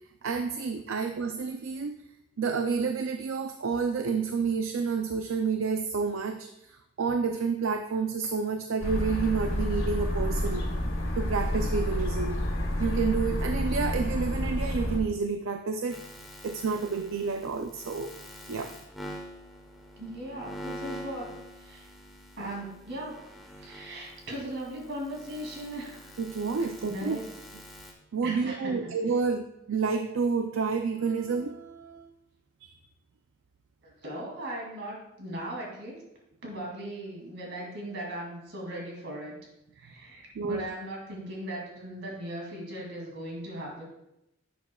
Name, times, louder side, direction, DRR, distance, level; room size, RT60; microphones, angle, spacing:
voice 1, 0.2-2.0 2.4-10.6 11.1-12.4 12.8-16.0 16.4-18.1 18.5-18.7 26.2-27.2 28.1-32.1 32.6-32.7 40.4-40.6, right 5 dB, 75° right, 7 dB, 0.5 m, -29 dB
sound 1, 8.8-15.0, left 1 dB, 85° left, 2.1 m, -29 dB
sound 2, 15.9-27.9, equal, ahead, 1.0 m, -45 dB
voice 2, 20.0-21.3 21.6-21.9 22.4-23.2 23.6-26.1 26.9-27.2 28.2-28.9 33.8-36.0 36.4-39.4 39.8-43.8, right 1 dB, 60° right, -1 dB, 2.5 m, -38 dB
10.5 x 7.1 x 2.3 m, 0.85 s
head